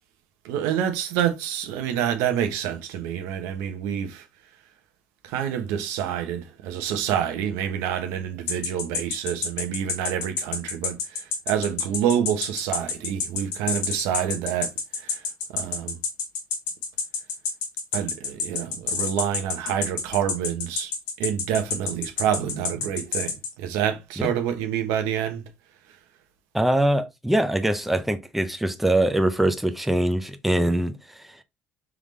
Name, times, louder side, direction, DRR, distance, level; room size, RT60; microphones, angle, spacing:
voice 1, 0.4-4.3 5.2-16.0 17.9-25.4, right 9 dB, 85° right, 0.8 m, -27 dB
sound 1, 8.5-23.5, left 5 dB, 90° left, 1.0 m, -28 dB
voice 2, 26.5-31.4, right 1 dB, 5° right, 0.5 m, -23 dB
3.7 x 3.4 x 3.1 m
supercardioid pair, 85°, 4 cm